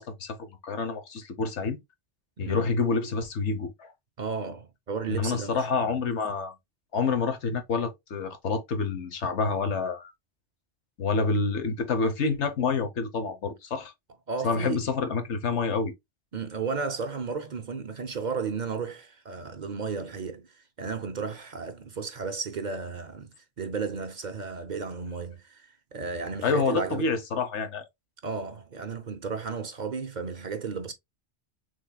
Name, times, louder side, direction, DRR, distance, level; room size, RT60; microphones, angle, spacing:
voice 1, 0.0-1.8 2.4-3.9 5.1-6.6 6.9-10.1 11.0-13.9 14.4-15.9 26.4-27.8, left 4 dB, 80° left, 1.3 m, -28 dB
voice 2, 2.4-2.7 4.2-6.0 14.3-14.9 16.3-27.1 28.2-30.9, right 5 dB, 50° right, 0.7 m, -34 dB
6.3 x 3.7 x 2.2 m
omnidirectional pair, 1.2 m